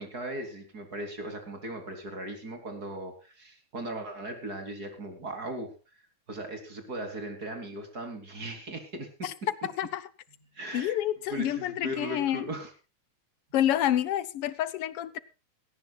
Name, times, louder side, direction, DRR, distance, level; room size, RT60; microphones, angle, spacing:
voice 1, 0.0-5.7 6.3-9.3 10.5-11.0 11.3-12.7, right 1 dB, 30° right, 3.8 m, -38 dB
voice 2, 10.7-12.5 13.5-15.2, left 11 dB, 70° left, 1.5 m, -28 dB
19.0 x 17.0 x 2.4 m
omnidirectional pair, 3.5 m